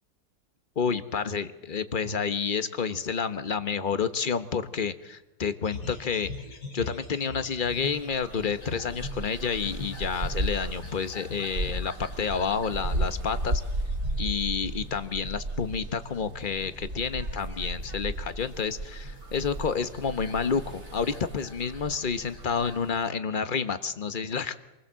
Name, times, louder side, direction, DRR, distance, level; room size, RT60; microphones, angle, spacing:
voice 1, 0.8-6.3 6.7-13.6 14.2-24.6, left 6 dB, 30° left, 11 dB, 1.3 m, -29 dB
sound 1, 5.6-22.9, left 3 dB, 85° left, 4.4 m, -45 dB
sound 2, 7.7-23.1, right 1 dB, 40° right, 2.3 m, -35 dB
27.0 x 20.5 x 7.6 m, 0.99 s
omnidirectional pair, 1.8 m